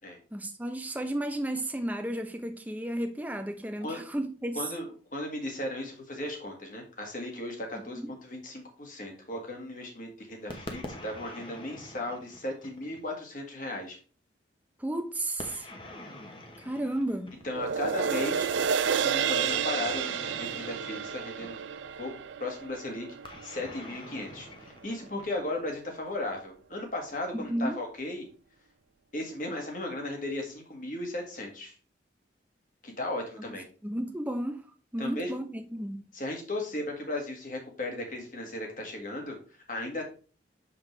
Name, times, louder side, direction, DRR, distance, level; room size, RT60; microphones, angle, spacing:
voice 1, 0.3-4.7 8.0-8.1 14.8-15.7 16.6-17.4 27.3-27.8 33.8-34.6 34.9-36.1, right 1 dB, 10° right, 0.6 m, -33 dB
voice 2, 4.6-14.0 17.4-18.6 19.0-21.6 22.0-22.1 22.4-23.1 23.4-28.3 29.1-31.8 32.8-33.6 35.0-35.3 36.1-39.4 39.7-40.0, left 1 dB, 45° left, 1.8 m, -36 dB
sound 1, 10.5-13.2 15.4-17.8 19.4-21.9 23.2-25.7, left 1 dB, 30° left, 1.0 m, -45 dB
sound 2, 17.5-24.1 24.5-24.6, right 7 dB, 85° right, 0.4 m, -31 dB
6.5 x 5.8 x 3.3 m
head